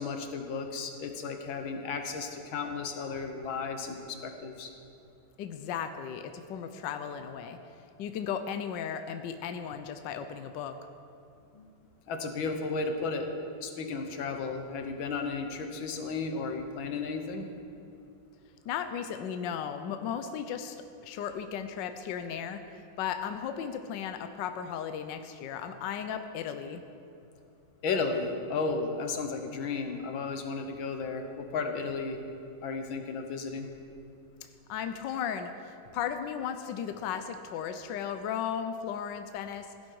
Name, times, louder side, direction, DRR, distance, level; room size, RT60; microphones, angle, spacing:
voice 1, 0.0-4.7 11.5-11.7 12.1-13.3 13.6-17.5 27.8-32.2 32.6-33.7, left 4 dB, 90° left, 5 dB, 1.9 m, -34 dB
voice 2, 5.4-7.6 8.0-10.8 18.7-22.6 23.0-26.8 34.7-39.7, left 8 dB, 75° left, 8 dB, 1.3 m, -35 dB
16.5 x 11.5 x 4.7 m, 2.7 s
omnidirectional pair, 2.1 m